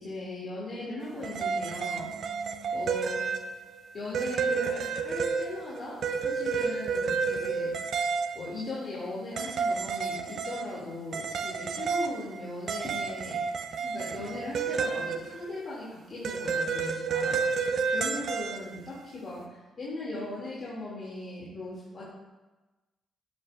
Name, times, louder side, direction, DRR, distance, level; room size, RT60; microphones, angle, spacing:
voice 1, 0.0-2.1 2.7-3.2 3.9-7.7 8.3-13.4 13.8-17.4 17.9-22.0, left 2 dB, 50° left, -7 dB, 2.4 m, -38 dB
sound 1, 1.0-3.8 4.1-8.6 9.4-10.8 11.1-15.6 16.2-18.8, right 5 dB, 65° right, 0.5 m, -31 dB
8.2 x 7.3 x 2.5 m, 1.1 s
hypercardioid pair, 45°, 0 cm